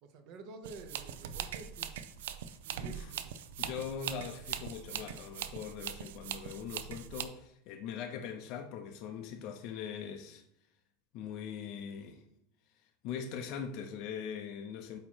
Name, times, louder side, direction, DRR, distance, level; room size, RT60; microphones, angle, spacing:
voice 1, 0.0-2.0 2.6-3.4, right 3 dB, 40° right, 0.7 m, -50 dB
sound 1, 0.6-7.3, right 9 dB, 85° right, 0.5 m, -41 dB
voice 2, 2.8-3.1 3.6-10.4 11.1-12.2 13.0-15.0, left 7 dB, 40° left, 0.5 m, -41 dB
8.5 x 2.9 x 4.5 m
supercardioid pair, 175°, 0 cm